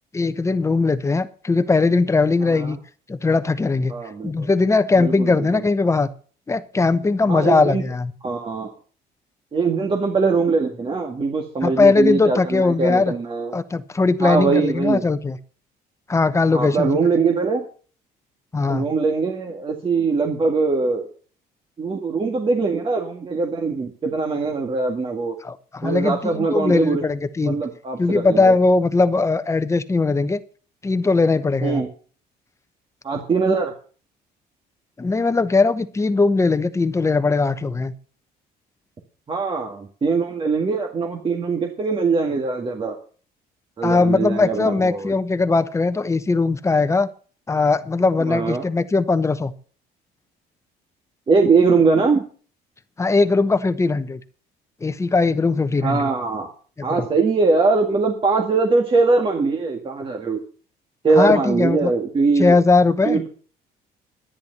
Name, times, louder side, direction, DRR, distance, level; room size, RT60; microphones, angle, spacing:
voice 1, 0.1-2.8 3.1-3.9 4.2-6.1 6.5-8.1 11.6-13.1 13.5-15.4 16.1-16.9 18.5-18.9 25.4-27.6 28.0-30.4 30.8-31.8 35.0-37.9 43.8-47.1 47.5-49.5 53.0-54.2 54.8-56.1 56.8-57.0 61.2-61.9 62.4-63.2, left 3 dB, 15° left, 11 dB, 1.0 m, -19 dB
voice 2, 3.9-4.5 5.0-5.6 7.3-7.8 8.2-8.7 9.5-13.5 14.2-15.0 16.5-17.7 18.7-21.1 21.8-25.4 25.8-27.0 27.4-28.5 31.6-31.9 33.0-33.7 39.3-43.0 43.8-45.1 48.2-48.7 51.3-52.2 55.8-56.5 56.8-60.4 61.0-62.6 63.0-63.3, right 4 dB, 30° right, 2 dB, 1.9 m, -21 dB
10.5 x 10.0 x 6.7 m, 0.42 s
cardioid pair, 110°, 17 cm